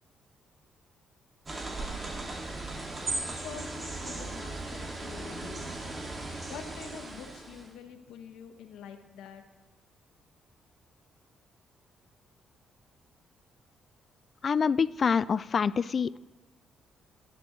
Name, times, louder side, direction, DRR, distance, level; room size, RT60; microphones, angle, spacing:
sound 1, 1.5-7.7, right 2 dB, 35° right, 2.1 m, -37 dB
voice 1, 3.4-5.9 6.5-9.4, left 8 dB, 85° left, 6 dB, 0.9 m, -46 dB
voice 2, 14.4-16.2, left 6 dB, 45° left, 19 dB, 0.3 m, -26 dB
14.0 x 10.5 x 3.1 m, 1.0 s
cardioid pair, 90°, 0 cm